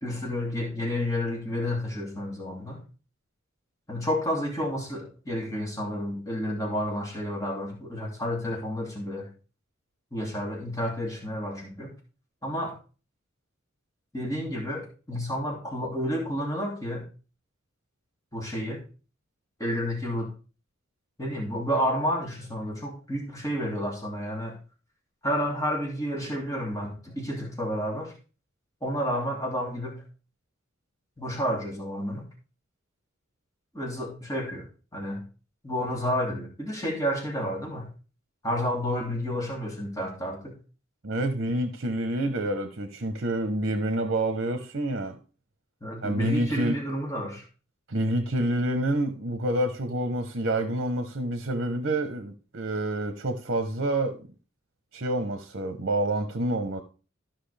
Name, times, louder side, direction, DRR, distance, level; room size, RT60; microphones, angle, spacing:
voice 1, 0.0-2.8 3.9-9.3 10.1-11.9 12.4-12.7 14.1-17.1 18.3-18.8 19.6-20.3 21.2-24.6 25.2-28.1 28.8-30.0 31.2-32.2 33.7-34.7 34.9-35.3 35.6-37.9 38.4-40.5 45.8-47.5, equal, 15° left, -2 dB, 2.5 m, -30 dB
voice 2, 41.0-45.2 46.0-46.8 47.9-54.3 54.9-56.8, right 1 dB, 55° right, 7 dB, 1.0 m, -28 dB
14.0 x 5.9 x 3.4 m, 0.36 s
head